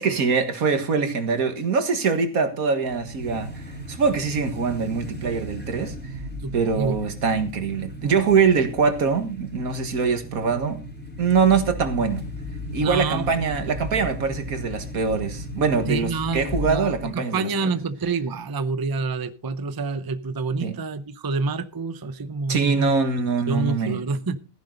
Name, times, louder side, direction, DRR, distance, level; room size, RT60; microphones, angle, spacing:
voice 1, 0.0-6.0 6.5-10.8 11.2-12.2 12.7-17.5 20.6-20.8 22.5-24.0, right 5 dB, 85° right, 2.0 m, -23 dB
sound 1, 2.8-17.1, left 1 dB, 5° left, 3.6 m, -36 dB
voice 2, 6.4-7.0 12.8-13.3 15.9-22.9 23.2-24.4, right 4 dB, 25° right, 0.6 m, -28 dB
15.0 x 10.5 x 3.9 m
omnidirectional pair, 1.5 m